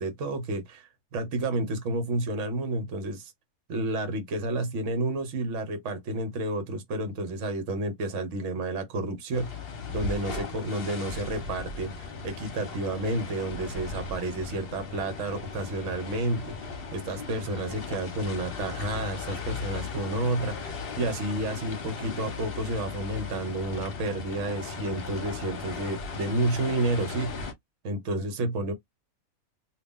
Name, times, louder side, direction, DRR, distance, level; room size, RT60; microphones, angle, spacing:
voice 1, 0.0-3.3 3.7-9.6 9.9-27.4 27.8-28.7, right 2 dB, 60° right, 1.2 m, -30 dB
sound 1, 9.3-27.5, left 4 dB, 50° left, 0.9 m, -37 dB
2.9 x 2.4 x 3.5 m
omnidirectional pair, 1.5 m